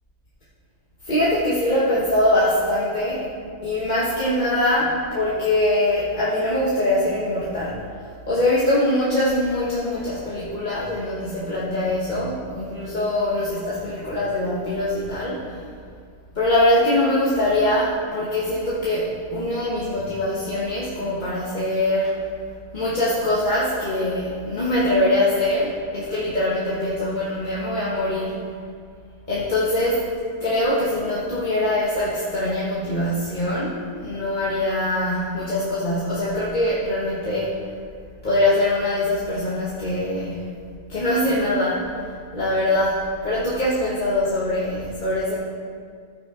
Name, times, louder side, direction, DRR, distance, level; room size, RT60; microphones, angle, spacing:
voice 1, 1.0-3.3 3.6-7.8 8.3-15.6 16.3-22.2 22.7-28.4 29.3-30.0 30.4-37.6 38.2-40.5 40.9-42.0 42.3-45.4, left 1 dB, 30° left, -8 dB, 1.3 m, -23 dB
14.5 x 6.2 x 3.7 m, 2.2 s
omnidirectional pair, 1.6 m